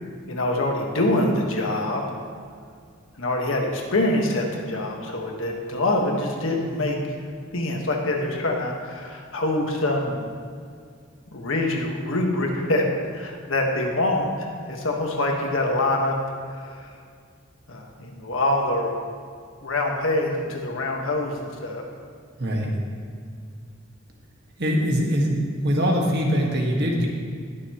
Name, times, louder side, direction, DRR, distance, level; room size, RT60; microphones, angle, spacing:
voice 1, 0.3-2.0 3.2-7.0 7.5-10.2 11.3-12.8 13.1-16.2 16.7-16.9 17.7-19.0 19.6-21.8, left 1 dB, 75° left, 0 dB, 1.5 m, -25 dB
voice 2, 22.4-22.7 24.6-27.1, equal, 55° right, -1 dB, 1.7 m, -22 dB
20.0 x 6.8 x 3.1 m, 2.2 s
head